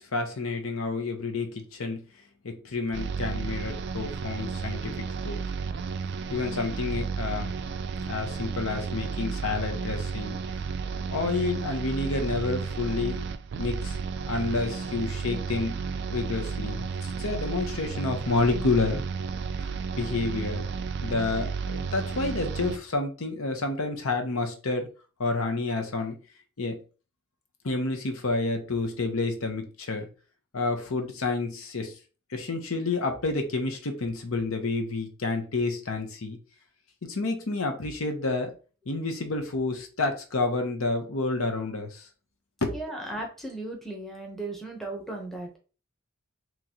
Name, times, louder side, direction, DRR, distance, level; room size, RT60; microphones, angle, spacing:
voice 1, 0.0-2.1 2.4-5.4 6.3-7.5 8.1-10.4 11.1-13.2 13.6-14.0 14.3-15.8 16.1-19.0 20.0-20.6 21.0-24.9 25.2-26.2 26.6-26.8 27.6-30.1 30.5-31.9 32.3-36.4 37.0-38.5 38.9-42.0 42.6-42.7, left 3 dB, 80° left, 5 dB, 0.8 m, -29 dB
sound 1, 2.9-22.8, right 5 dB, 55° right, 0.3 m, -32 dB
voice 2, 42.7-45.6, right 2 dB, ahead, 0 dB, 0.8 m, -36 dB
3.9 x 3.0 x 2.9 m, 0.35 s
head